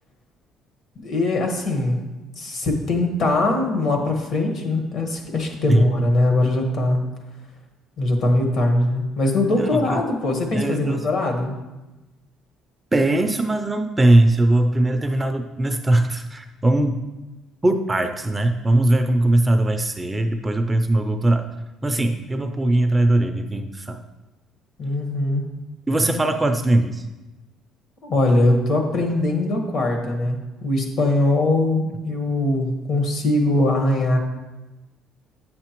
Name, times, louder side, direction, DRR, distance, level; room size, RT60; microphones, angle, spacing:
voice 1, 1.0-2.0 2.4-7.0 8.0-11.5 24.8-25.4 28.0-34.2, left 2 dB, 50° left, 3 dB, 1.4 m, -21 dB
voice 2, 9.6-10.0 10.5-11.1 12.9-17.0 17.6-21.5 21.8-24.0 25.9-27.0, right 1 dB, 15° right, 6 dB, 0.4 m, -20 dB
9.0 x 6.5 x 3.0 m, 1.1 s
cardioid pair, 135°, 0 cm